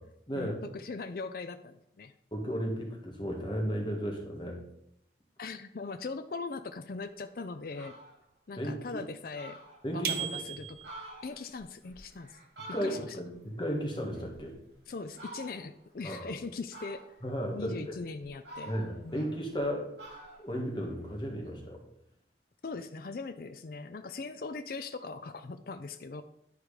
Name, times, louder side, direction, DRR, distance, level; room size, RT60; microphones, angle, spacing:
voice 1, 0.3-2.1 5.4-8.0 8.5-9.6 9.9-10.9 11.2-12.4 12.8-13.2 14.9-17.1 17.5-18.7 19.0-19.3 22.6-26.2, left 4 dB, 55° left, 8 dB, 0.4 m, -40 dB
voice 2, 2.3-4.6 8.6-9.0 9.8-10.3 12.7-14.5 16.0-16.3 17.2-18.0 18.7-19.9 20.4-21.8, equal, 25° left, 0 dB, 1.7 m, -34 dB
Fowl, 7.1-7.2 7.6-8.2 8.7-8.8 9.0-9.1 9.3-10.2 10.7-13.3 13.7-14.7 15.1-15.8 16.7-17.4 17.9-19.7 20.0-21.6, right 2 dB, 70° right, 3.3 m, -49 dB
sound 1, 10.0-11.1, right 9 dB, 55° right, 0.9 m, -36 dB
10.5 x 4.8 x 4.9 m, 0.76 s
head